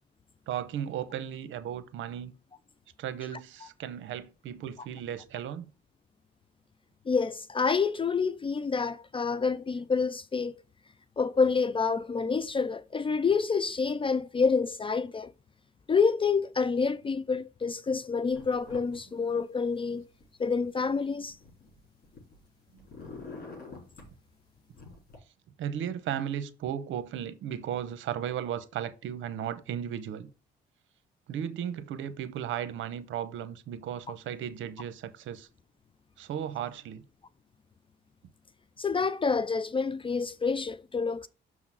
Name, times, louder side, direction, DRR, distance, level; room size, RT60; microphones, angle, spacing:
voice 1, 0.5-2.3 3.0-5.7 22.7-22.9 25.6-30.3 31.3-35.5 36.2-37.0, right 9 dB, 80° right, 0.8 m, -35 dB
voice 2, 7.1-10.5 11.2-15.3 15.9-20.0 20.4-21.4 38.8-41.3, left 5 dB, 25° left, 0.4 m, -28 dB
sound 1, 18.3-19.0 19.3-20.2 20.8-22.5 22.7-24.1 24.7-25.2, left 3 dB, 50° left, 4.4 m, -46 dB
6.2 x 3.8 x 6.1 m
cardioid pair, 90°, 20 cm